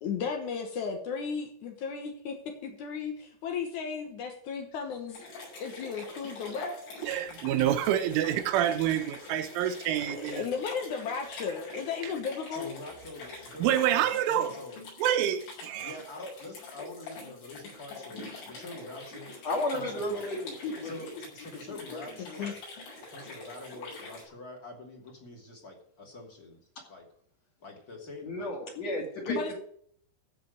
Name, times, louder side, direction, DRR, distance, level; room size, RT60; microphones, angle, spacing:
voice 1, 0.0-5.3 5.6-6.8 10.1-12.7 22.2-22.5 29.3-29.5, left 6 dB, 80° left, 1.7 m, -35 dB
sound 1, 5.1-24.2, left 2 dB, 65° left, 8.5 m, -45 dB
voice 2, 7.0-10.5 13.6-14.5 15.0-15.9, right 11 dB, 85° right, 3.5 m, -27 dB
voice 3, 12.5-14.8 15.8-19.5 19.7-20.3 20.8-22.5 23.1-26.6 26.9-27.1 27.6-28.5, left 2 dB, 25° left, 2.2 m, -45 dB
voice 4, 19.4-21.2 21.7-22.5 28.2-29.5, left 1 dB, 40° left, 3.0 m, -34 dB
15.0 x 5.2 x 7.8 m
omnidirectional pair, 5.5 m